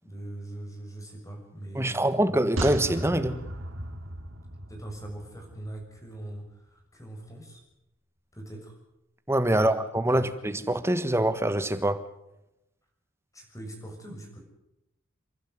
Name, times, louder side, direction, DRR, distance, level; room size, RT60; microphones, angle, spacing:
voice 1, 0.0-2.4 4.7-7.6 8.3-8.8 9.5-9.7 10.1-10.3 13.3-14.4, right 1 dB, 15° left, 6.6 m, -41 dB
voice 2, 1.7-3.4 9.3-12.0, right 1 dB, 15° right, 1.5 m, -25 dB
sound 1, 2.6-6.0 6.3-6.4, right 1 dB, 85° right, 2.6 m, -36 dB
29.5 x 12.0 x 9.7 m
head